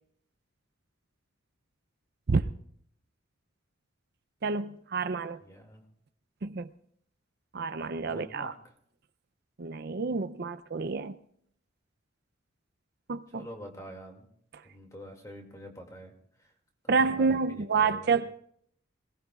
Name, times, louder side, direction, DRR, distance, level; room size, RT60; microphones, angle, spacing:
voice 1, 4.4-5.4 6.4-6.7 7.5-8.5 9.6-11.2 13.1-13.5 16.9-18.3, right 4 dB, 55° right, 0.5 m, -28 dB
voice 2, 5.4-5.8 8.1-8.5 13.3-14.3 14.6-16.2 16.4-16.5 17.0-18.2, equal, 15° left, 2.3 m, -46 dB
27.0 x 18.5 x 2.4 m
head